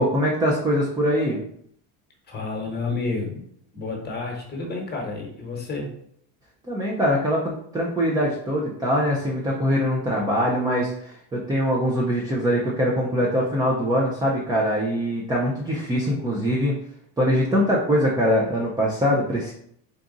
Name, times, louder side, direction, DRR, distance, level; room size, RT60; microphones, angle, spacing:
voice 1, 0.0-1.4 6.7-16.7 17.2-19.5, equal, 10° right, -4 dB, 0.3 m, -23 dB
voice 2, 2.3-3.4 3.7-5.9, left 3 dB, 20° left, 0 dB, 1.1 m, -30 dB
4.0 x 2.4 x 3.7 m, 0.67 s
supercardioid pair, 130°, 49 cm